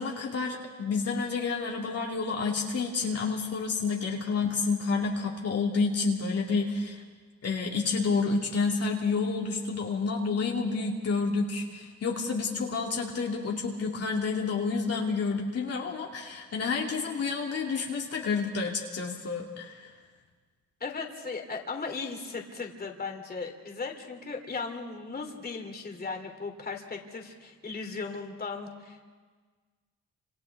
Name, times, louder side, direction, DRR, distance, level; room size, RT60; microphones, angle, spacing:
voice 1, 0.0-7.0 7.4-19.9, left 4 dB, 55° left, -1 dB, 2.6 m, -29 dB
voice 2, 20.8-29.0, left 4 dB, 30° left, 3 dB, 3.0 m, -37 dB
29.5 x 27.0 x 3.6 m, 1.5 s
cardioid pair, 90°, 30 cm